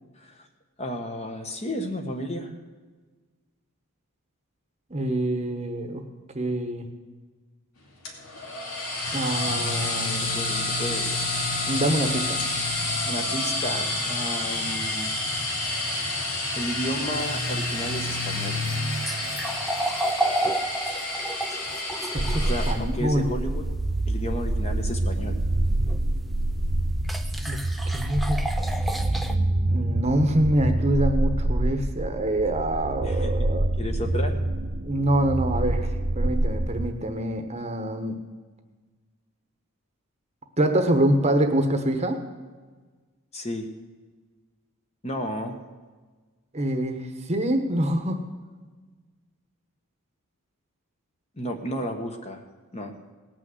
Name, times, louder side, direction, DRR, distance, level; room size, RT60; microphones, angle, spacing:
voice 1, 0.2-0.5 0.8-2.5 10.2-11.2 13.1-15.1 16.5-18.6 22.4-23.6 24.1-25.4 33.0-33.5 33.8-34.4 43.3-43.7 45.0-45.6 51.3-52.4 52.7-52.9, equal, 30° left, 5 dB, 1.2 m, -32 dB
voice 2, 4.9-6.0 6.3-6.9 9.1-10.6 11.7-12.4 22.1-23.4 27.5-27.6 27.9-28.4 29.7-33.7 34.8-35.9 36.1-38.2 40.6-42.2 46.5-47.0 47.3-48.2, right 1 dB, 30° right, 6 dB, 1.0 m, -25 dB
sound 1, 8.0-22.7, left 2 dB, 70° left, 2.6 m, -29 dB
sound 2, 17.2-22.8 25.9-26.0 27.0-29.4, right 1 dB, ahead, 0.6 m, -31 dB
sound 3, 22.2-36.9, right 1 dB, 55° right, 0.8 m, -26 dB
18.0 x 6.1 x 7.8 m, 1.4 s
head